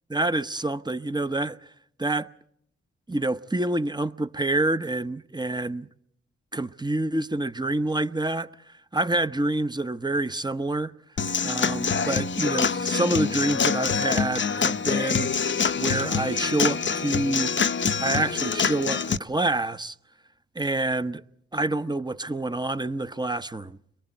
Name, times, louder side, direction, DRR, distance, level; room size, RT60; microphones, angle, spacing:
voice 1, 0.1-1.6 2.0-2.3 3.1-5.9 6.5-10.9 11.4-15.3 15.8-17.5 18.0-19.9 20.5-21.2 21.5-23.8, right 2 dB, 15° right, 0.9 m, -27 dB
Human voice / Acoustic guitar / Drum, 11.2-19.2, left 6 dB, 40° left, 0.8 m, -25 dB
30.0 x 22.5 x 4.5 m
supercardioid pair, 40°, 29 cm